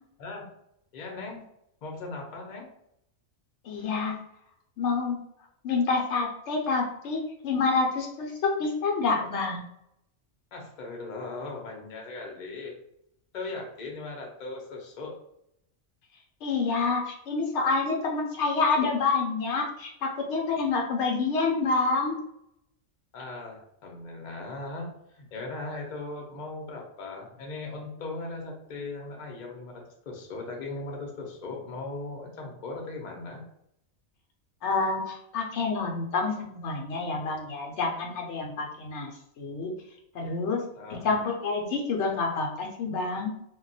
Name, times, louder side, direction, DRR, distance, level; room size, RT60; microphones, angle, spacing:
voice 1, 0.9-1.4 1.8-2.7 10.5-12.7 13.3-15.2 23.1-33.4 40.8-41.1, left 3 dB, 45° left, 0 dB, 0.7 m, -38 dB
voice 2, 3.6-4.2 4.8-5.2 5.6-9.7 16.4-22.2 34.6-39.1 39.4-39.8 40.1-40.6 40.9-43.3, left 4 dB, 75° left, 1 dB, 0.8 m, -28 dB
2.3 x 2.1 x 3.9 m, 0.76 s
omnidirectional pair, 1.2 m